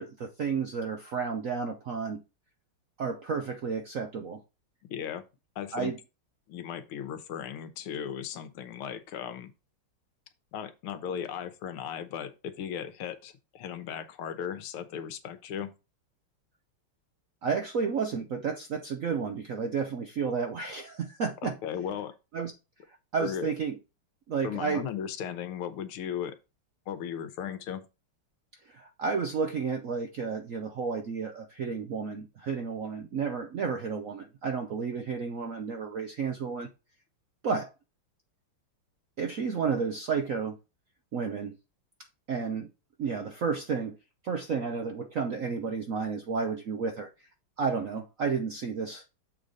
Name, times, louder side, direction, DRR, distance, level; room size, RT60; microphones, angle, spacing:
voice 1, 0.0-2.2 3.0-4.4 5.7-6.0 17.4-21.6 22.3-22.5 23.1-23.8 24.3-24.9 28.7-36.7 37.4-37.7 39.2-40.6 41.1-41.5 42.3-42.7 43.0-44.0 44.2-47.1 47.6-49.1, right 5 dB, 70° right, 0.7 m, -31 dB
voice 2, 4.8-5.2 5.5-5.9 6.5-9.5 10.5-15.7 21.4-22.1 23.2-23.5 24.4-26.4 26.9-27.9, left 8 dB, 85° left, 1.7 m, -36 dB
7.2 x 4.0 x 4.8 m
omnidirectional pair, 2.4 m